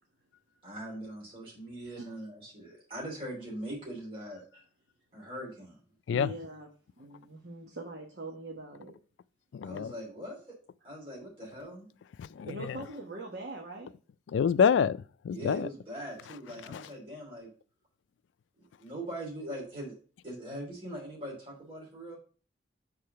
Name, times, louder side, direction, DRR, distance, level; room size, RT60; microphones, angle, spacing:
voice 1, 0.6-4.4 5.1-5.8 9.6-10.5 10.8-11.9 15.3-17.5 18.6-19.9 20.2-22.2, right 1 dB, 30° right, 2.8 m, -41 dB
voice 2, 6.1-6.7 7.0-8.9 12.4-13.9 15.5-15.6, right 2 dB, 65° right, 1.1 m, -42 dB
voice 3, 9.5-9.9 12.2-12.8 14.3-15.7 16.7-16.8, left 7 dB, 90° left, 0.3 m, -27 dB
6.6 x 3.9 x 5.5 m
head